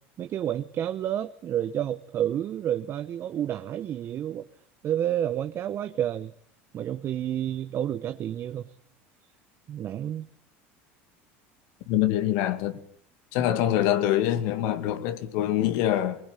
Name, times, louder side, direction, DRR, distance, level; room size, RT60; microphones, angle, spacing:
voice 1, 0.2-4.5 4.8-6.3 6.7-8.7 9.7-10.3, right 11 dB, 45° right, 1.0 m, -30 dB
voice 2, 11.9-12.8 13.3-16.2, left 12 dB, 70° left, 2.4 m, -25 dB
22.5 x 20.5 x 9.2 m
supercardioid pair, 100°, 6 cm